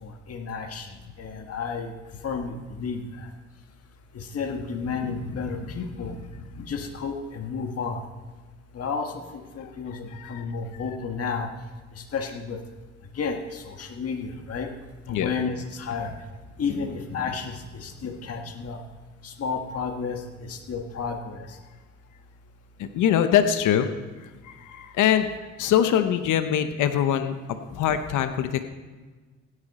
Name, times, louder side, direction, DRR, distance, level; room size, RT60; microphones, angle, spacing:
voice 1, 0.0-0.9 1.2-1.9 2.2-3.3 4.1-6.2 6.5-8.0 8.7-11.5 11.9-12.6 13.1-14.7 15.1-16.1 16.6-18.8 19.2-21.5, left 5 dB, 50° left, 4 dB, 1.6 m, -32 dB
voice 2, 10.1-10.4 15.1-15.3 22.8-23.9 24.4-25.3 25.6-27.3 27.7-28.6, left 9 dB, 85° left, 9 dB, 0.9 m, -23 dB
16.5 x 10.5 x 4.2 m, 1.3 s
cardioid pair, 90°, 30 cm